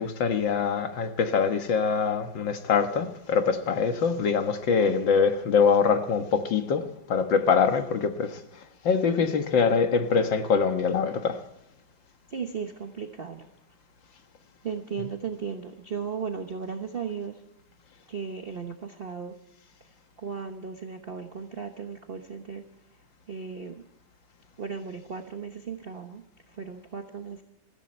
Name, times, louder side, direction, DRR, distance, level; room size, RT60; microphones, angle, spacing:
voice 1, 0.0-8.4 8.8-11.4, left 5 dB, 85° left, 7 dB, 2.2 m, -24 dB
voice 2, 12.3-13.5 14.6-17.4 18.1-19.3 20.2-22.6 23.3-23.8 24.6-27.4, right 6 dB, 35° right, 5 dB, 1.1 m, -36 dB
21.0 x 15.0 x 4.4 m, 0.86 s
omnidirectional pair, 2.0 m